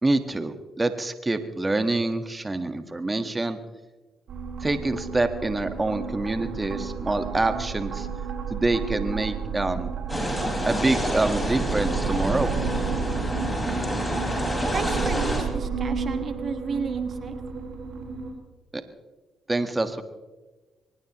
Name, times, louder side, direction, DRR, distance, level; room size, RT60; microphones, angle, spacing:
voice 1, 0.0-3.6 4.6-8.1 8.5-9.9 10.7-12.5 19.5-20.0, right 2 dB, 20° right, 8 dB, 1.5 m, -26 dB
sound 1, 4.3-18.3, right 6 dB, 65° right, 4.4 m, -31 dB
sound 2, 10.1-15.4, left 1 dB, 10° left, 5.4 m, -29 dB
voice 2, 14.5-17.4, right 5 dB, 50° right, 8 dB, 1.3 m, -32 dB
23.5 x 20.0 x 3.1 m, 1.2 s
cardioid pair, 75°, 0 cm